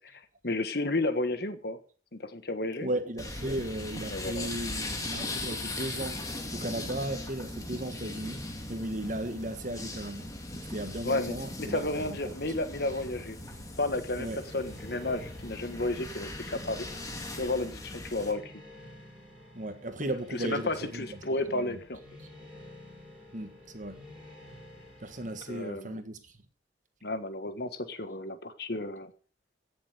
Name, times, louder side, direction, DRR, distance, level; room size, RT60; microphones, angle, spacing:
voice 1, 0.0-1.8 2.1-2.9 4.1-4.5 11.0-13.4 13.8-14.3 14.5-16.9 17.4-18.5 20.3-22.0 25.5-26.0 27.0-29.1, left 2 dB, 55° left, 1.5 m, -32 dB
voice 2, 2.8-6.2 6.5-10.3 10.5-12.2 14.2-14.4 19.5-21.2 21.5-21.8 23.3-24.0 25.0-26.2, right 1 dB, 40° right, 1.5 m, -36 dB
sound 1, 3.2-18.3, left 2 dB, 20° left, 2.2 m, -39 dB
sound 2, 14.3-25.7, left 2 dB, 5° right, 4.3 m, -50 dB
16.0 x 7.1 x 6.7 m
head